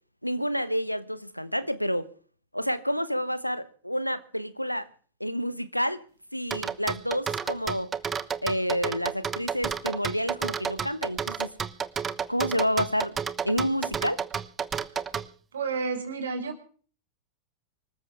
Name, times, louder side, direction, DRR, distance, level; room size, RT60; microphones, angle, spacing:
voice 1, 0.2-2.1 2.5-4.9 5.2-6.0 6.3-7.9 8.4-11.5 12.3-13.1 13.4-14.2, equal, 90° left, 1.2 m, -29 dB
sound 1, 6.5-15.3, right 7 dB, 20° right, 1.0 m, -31 dB
voice 2, 15.5-16.6, right 4 dB, 65° right, 4.5 m, -31 dB
25.0 x 14.0 x 3.5 m
figure-of-eight pair, 90°, 0 cm